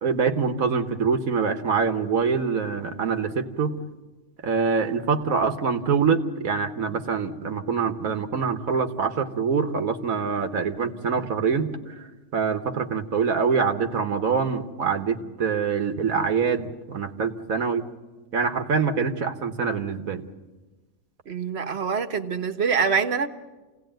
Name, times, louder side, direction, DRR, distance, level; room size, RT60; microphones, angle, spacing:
voice 1, 0.0-3.7 4.4-11.9 12.3-17.9 18.3-20.3, right 5 dB, 75° right, 1.7 m, -25 dB
voice 2, 21.3-23.3, right 6 dB, 50° right, 1.4 m, -25 dB
27.5 x 17.5 x 9.1 m
omnidirectional pair, 1.5 m